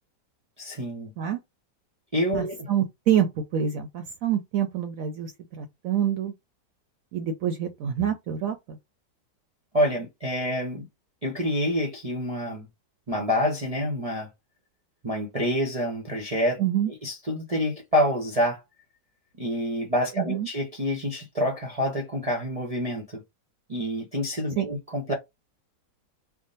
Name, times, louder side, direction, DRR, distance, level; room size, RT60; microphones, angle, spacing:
voice 1, 0.6-1.1 2.1-2.7 9.7-10.9 11.2-12.7 13.1-14.3 15.0-16.6 17.0-18.6 19.4-23.2 23.7-25.1, equal, 50° right, 0.4 m, -27 dB
voice 2, 2.3-6.3 7.1-8.8 16.6-16.9 20.2-20.5 24.6-24.7, right 9 dB, 70° right, 0.8 m, -27 dB
3.6 x 2.1 x 3.9 m
omnidirectional pair, 1.9 m